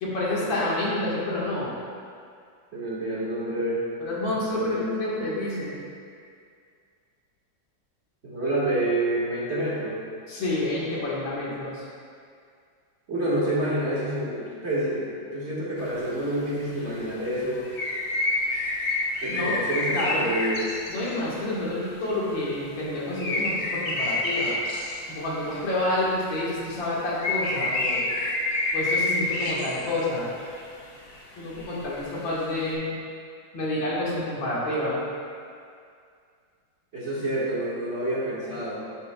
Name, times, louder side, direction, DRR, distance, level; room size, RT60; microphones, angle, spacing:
voice 1, 0.0-1.8 4.0-5.8 10.3-11.9 19.3-19.6 19.9-20.2 20.9-24.6 25.1-28.2 28.7-30.3 31.4-32.9 33.5-35.0, left 1 dB, 85° left, -7 dB, 2.4 m, -29 dB
voice 2, 2.7-3.9 4.5-4.9 8.2-10.0 13.1-17.7 19.2-20.7 36.9-38.8, right 1 dB, 35° right, -9 dB, 1.9 m, -28 dB
sound 1, 15.8-16.1 16.9-21.2 21.6-26.0 26.4-26.5 26.9-30.6 31.1-32.7, left 2 dB, 60° left, 1.5 m, -29 dB
11.0 x 7.1 x 2.3 m, 2.3 s
omnidirectional pair, 2.0 m